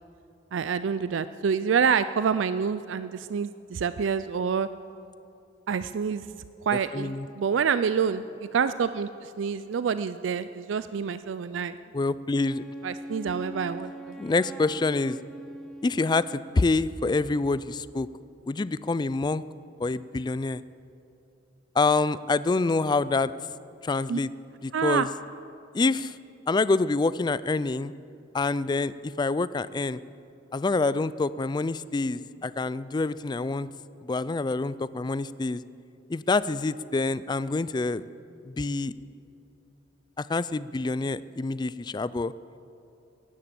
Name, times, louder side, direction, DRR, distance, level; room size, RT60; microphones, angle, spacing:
voice 1, 0.5-4.7 5.7-6.3 6.7-11.8 12.8-14.2 24.1-24.2 24.7-25.1, right 6 dB, 90° right, 13 dB, 0.4 m, -27 dB
voice 2, 6.9-7.3 11.9-12.6 14.2-15.2 15.8-18.1 18.5-19.4 19.8-20.6 21.8-23.3 23.8-24.3 24.6-25.1 25.7-26.2 26.5-27.9 28.3-30.0 30.5-33.7 34.0-35.6 36.1-38.0 38.4-38.9 40.2-42.3, left 3 dB, 25° left, 17 dB, 0.3 m, -26 dB
Wind instrument woodwind instrument, 12.3-16.7, equal, ahead, 1.4 m, -42 dB
16.5 x 11.0 x 7.7 m, 2.6 s
head